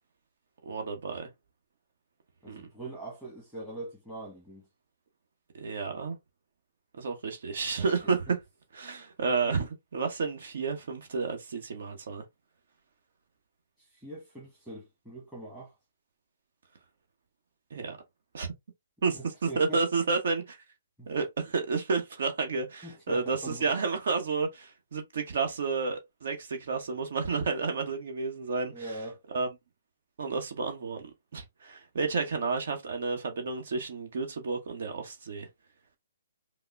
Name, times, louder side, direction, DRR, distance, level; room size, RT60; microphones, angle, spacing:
voice 1, 0.6-1.3 2.5-2.7 5.5-6.2 7.0-8.4 8.7-12.2 17.7-18.0 18.3-18.5 19.0-20.6 21.1-28.9 29.3-29.5 30.2-35.5, right 4 dB, 50° right, 1.3 m, -31 dB
voice 2, 2.4-4.6 7.8-8.3 13.8-15.7 19.1-19.8 21.0-21.1 22.8-23.7 28.7-29.2, right 2 dB, 5° right, 1.4 m, -42 dB
5.6 x 2.1 x 3.5 m
figure-of-eight pair, 130°, 0 cm